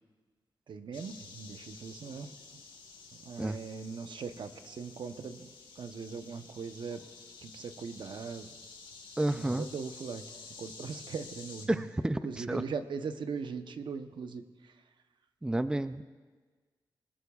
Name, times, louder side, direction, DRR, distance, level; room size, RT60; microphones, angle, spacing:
voice 1, 0.7-2.4 3.1-5.5 5.8-7.1 7.4-8.5 9.3-10.3 10.6-11.9 12.2-14.8, right 5 dB, 75° right, 8 dB, 0.8 m, -40 dB
sound 1, 0.9-11.7, left 4 dB, 85° left, 1.5 m, -51 dB
voice 2, 9.2-9.7 11.7-12.6 15.4-16.0, right 1 dB, 10° right, 11 dB, 0.4 m, -30 dB
27.5 x 19.5 x 2.4 m, 1.4 s
wide cardioid pair, 135°, 8 cm